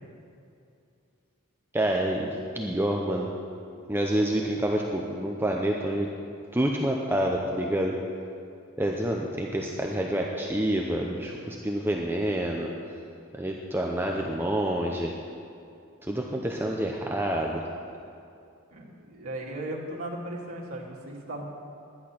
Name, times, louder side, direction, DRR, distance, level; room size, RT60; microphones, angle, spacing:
voice 1, 1.7-3.3 3.9-6.1 6.5-7.9 8.8-12.7 13.3-15.1 16.0-17.6, right 1 dB, 10° right, 0 dB, 0.6 m, -28 dB
voice 2, 18.7-21.4, right 1 dB, 80° right, -4 dB, 2.2 m, -37 dB
11.0 x 10.5 x 5.9 m, 2.5 s
head